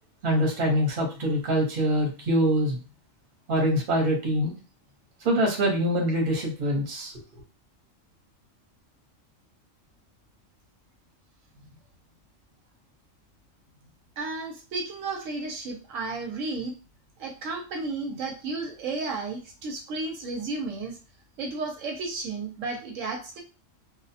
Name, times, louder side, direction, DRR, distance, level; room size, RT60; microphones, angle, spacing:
voice 1, 0.2-2.8 3.5-4.5 5.2-7.1, equal, 45° right, 0 dB, 0.9 m, -24 dB
voice 2, 14.2-16.8 17.2-21.0 21.4-23.4, right 3 dB, 80° right, 1 dB, 1.0 m, -33 dB
2.4 x 2.1 x 2.6 m, 0.34 s
omnidirectional pair, 1.3 m